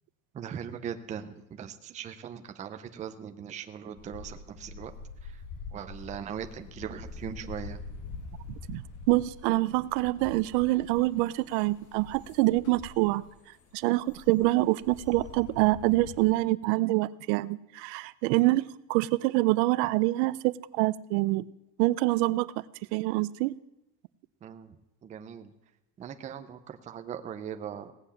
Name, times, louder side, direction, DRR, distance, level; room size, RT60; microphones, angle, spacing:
voice 1, 0.3-4.9 5.2-5.4 5.7-7.8 24.4-24.8 25.0-25.5 26.0-27.9, right 8 dB, 15° right, 8 dB, 0.5 m, -40 dB
sound 1, 4.0-16.3, left 4 dB, 35° left, 1.8 m, -45 dB
voice 2, 8.5-13.2 13.7-21.5 21.8-22.5 22.9-23.6, right 19 dB, 85° right, 18 dB, 0.7 m, -26 dB
17.5 x 7.8 x 8.4 m, 0.91 s
cardioid pair, 175°, 49 cm